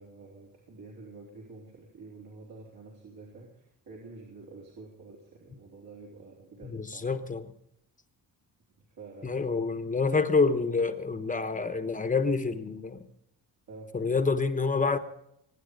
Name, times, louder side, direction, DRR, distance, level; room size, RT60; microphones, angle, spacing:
voice 1, 0.0-7.3 8.9-9.6 13.7-13.9, right 3 dB, 65° right, 3.9 m, -48 dB
voice 2, 6.6-7.5 9.2-13.0 13.9-15.0, left 4 dB, 20° left, 1.0 m, -27 dB
23.0 x 10.0 x 5.3 m
cardioid pair, 150°, 38 cm